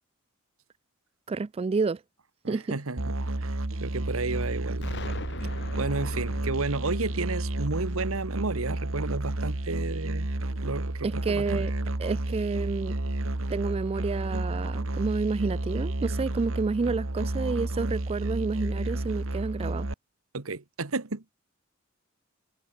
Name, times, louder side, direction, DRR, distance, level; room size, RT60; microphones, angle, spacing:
voice 1, 1.3-2.0 2.5-2.8 11.0-11.7 12.0-13.0 13.5-19.9, right 4 dB, 30° right, 0.3 m, -29 dB
voice 2, 2.4-4.9 5.8-10.3 10.6-11.6 20.3-21.2, right 3 dB, 90° right, 1.4 m, -32 dB
Musical instrument, 3.0-19.9, right 2 dB, 70° right, 1.5 m, -31 dB
Explosion, 4.8-9.6, left 2 dB, 60° left, 6.9 m, -42 dB
head